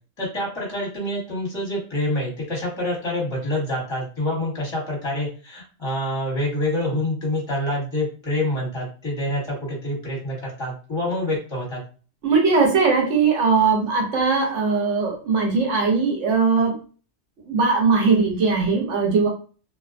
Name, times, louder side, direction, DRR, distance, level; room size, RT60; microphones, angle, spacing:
voice 1, 0.2-11.8, left 1 dB, 25° left, -4 dB, 1.2 m, -26 dB
voice 2, 12.2-16.8 17.5-19.3, right 4 dB, 75° right, 1 dB, 1.1 m, -20 dB
2.4 x 2.2 x 2.5 m, 0.37 s
omnidirectional pair, 1.3 m